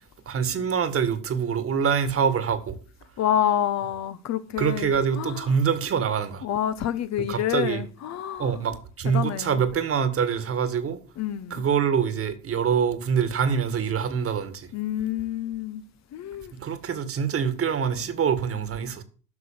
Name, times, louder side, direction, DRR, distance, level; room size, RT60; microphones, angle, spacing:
voice 1, 0.3-2.8 4.6-6.5 7.3-7.8 8.4-11.0 11.5-14.7 16.6-19.0, right 7 dB, 40° right, 1.8 m, -25 dB
voice 2, 3.2-5.5 6.4-8.5 9.1-9.6 11.2-11.6 14.7-15.8 16.1-16.5, left 10 dB, 50° left, 1.0 m, -28 dB
10.0 x 6.1 x 7.4 m
hypercardioid pair, 85°, 36 cm